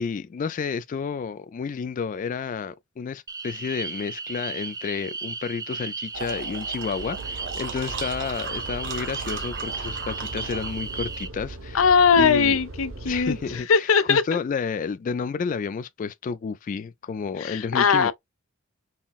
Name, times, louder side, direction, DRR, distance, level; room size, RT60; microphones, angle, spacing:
voice 1, 0.0-11.9 12.2-12.6 13.0-18.1, left 5 dB, 40° left, 0.3 m, -31 dB
sound 1, 3.3-11.3, right 4 dB, 20° right, 0.5 m, -35 dB
sound 2, 6.1-11.2, right 6 dB, 60° right, 0.9 m, -38 dB
sound 3, 6.9-13.6, right 1 dB, 85° right, 1.3 m, -40 dB
voice 2, 11.7-14.2 17.4-18.1, left 5 dB, 90° left, 0.6 m, -20 dB
5.6 x 2.0 x 2.4 m
head